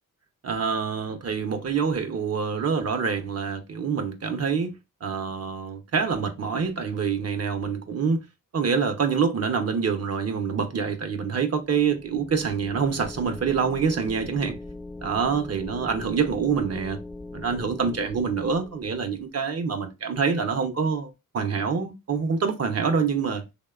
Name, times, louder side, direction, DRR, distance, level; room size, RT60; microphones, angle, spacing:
voice 1, 0.4-4.7 5.0-8.2 8.5-14.6 15.0-17.0 17.3-23.4, right 6 dB, 45° right, 0.5 m, -26 dB
sound 1, 11.5-19.3, left 2 dB, 10° left, 0.4 m, -41 dB
2.8 x 2.1 x 2.3 m
cardioid pair, 65°, 34 cm